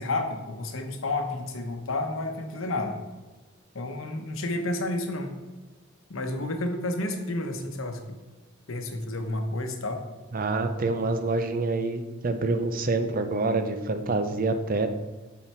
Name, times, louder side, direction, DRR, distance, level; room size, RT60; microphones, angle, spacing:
voice 1, 0.0-3.0 3.7-5.3 6.1-8.2 8.7-10.0, left 2 dB, 70° left, 5 dB, 0.9 m, -30 dB
voice 2, 10.3-14.9, right 3 dB, 45° right, 8 dB, 0.6 m, -26 dB
7.5 x 4.1 x 4.5 m, 1.3 s
head